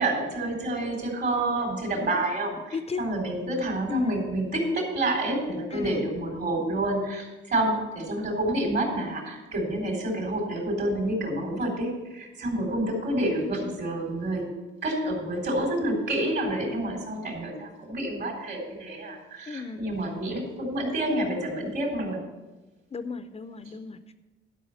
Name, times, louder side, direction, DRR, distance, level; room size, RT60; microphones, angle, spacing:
voice 1, 0.0-14.4 14.8-22.2, right 1 dB, 60° right, 1 dB, 3.8 m, -28 dB
voice 2, 3.9-4.2 5.7-6.0 19.5-19.8 22.9-24.1, left 5 dB, 30° left, 10 dB, 0.6 m, -34 dB
11.5 x 5.6 x 7.1 m, 1.1 s
cardioid pair, 90°, 20 cm